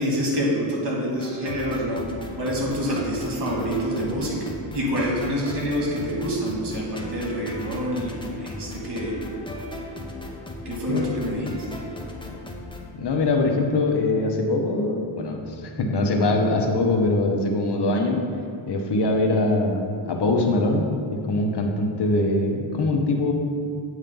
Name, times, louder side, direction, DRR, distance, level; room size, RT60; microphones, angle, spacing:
voice 1, 0.0-2.1 2.3-9.2 10.6-11.8, equal, 60° right, -2 dB, 1.7 m, -27 dB
sound 1, 1.2-12.8, left 2 dB, 10° left, 0.7 m, -37 dB
voice 2, 13.0-18.2 18.7-20.9 21.3-23.3, left 2 dB, 55° left, 2 dB, 0.9 m, -22 dB
8.8 x 3.1 x 5.3 m, 2.3 s
cardioid pair, 80°, 48 cm